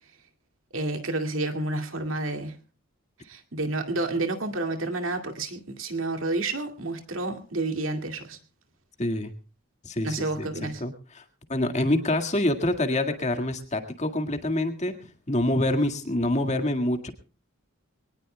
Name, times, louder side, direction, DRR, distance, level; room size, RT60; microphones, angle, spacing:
voice 1, 0.7-2.6 3.2-8.4 10.0-10.8, right 2 dB, 70° right, 6 dB, 2.3 m, -30 dB
voice 2, 9.0-9.3 9.8-10.5 10.8-11.2 11.5-15.0 15.3-17.1, left 1 dB, 35° left, 6 dB, 1.9 m, -26 dB
23.5 x 19.0 x 2.2 m, 0.34 s
head